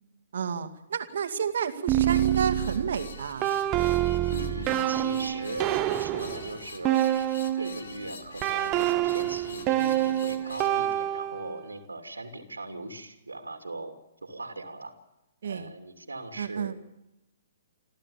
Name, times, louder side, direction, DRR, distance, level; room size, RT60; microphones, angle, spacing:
voice 1, 0.3-3.5 15.4-15.7 16.4-16.7, right 7 dB, 60° right, 9 dB, 2.1 m, -31 dB
sound 1, 1.9-7.8 8.4-11.6, right 13 dB, 25° right, 1.1 m, -27 dB
sound 2, 2.0-10.7, left 4 dB, 65° left, 2.5 m, -46 dB
voice 2, 4.3-7.0 7.6-13.9 14.2-14.9 15.4-16.7, right 2 dB, 80° right, 6 dB, 2.8 m, -39 dB
27.5 x 14.0 x 7.2 m, 0.92 s
figure-of-eight pair, 120°, 0 cm